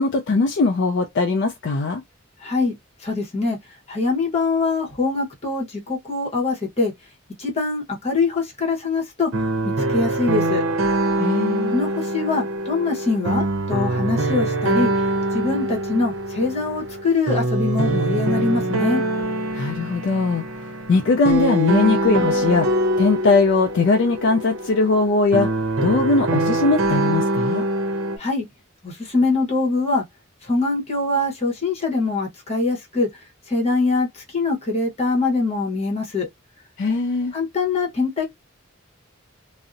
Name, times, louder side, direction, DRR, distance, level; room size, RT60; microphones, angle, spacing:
voice 1, 0.0-2.0 11.2-11.7 19.5-20.4 20.9-25.5 25.8-27.6 36.8-37.3, left 3 dB, 55° left, 0.3 m, -20 dB
voice 2, 2.4-2.7 3.0-3.6 3.9-6.9 7.4-9.3 9.9-10.6 11.7-14.9 15.3-19.0 28.2-28.5 28.8-30.0 30.4-33.1 33.5-34.1 34.3-36.3 37.3-38.2, left 3 dB, 30° left, 0.9 m, -23 dB
sound 1, 9.3-28.2, right 1 dB, 75° right, 0.6 m, -24 dB
2.6 x 2.0 x 2.4 m
head